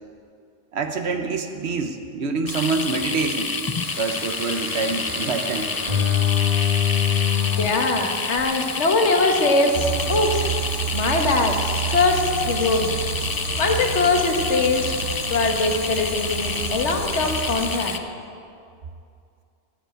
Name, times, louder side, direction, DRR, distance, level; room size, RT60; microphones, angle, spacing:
voice 1, 0.7-3.5 4.0-5.7, right 4 dB, 65° right, 7 dB, 1.1 m, -26 dB
sound 1, 2.5-18.0, left 4 dB, 35° left, 0.3 m, -29 dB
sound 2, 3.7-7.7 8.4-8.5, left 9 dB, 35° right, 1.4 m, -24 dB
voice 2, 7.6-10.4 10.9-11.6 11.9-12.9 13.6-14.9 15.3-17.9, left 3 dB, 75° left, 3 dB, 1.5 m, -21 dB
sound 3, 9.7-17.8, right 6 dB, 85° right, 1.3 m, -30 dB
15.0 x 5.0 x 9.0 m, 2.4 s
omnidirectional pair, 1.2 m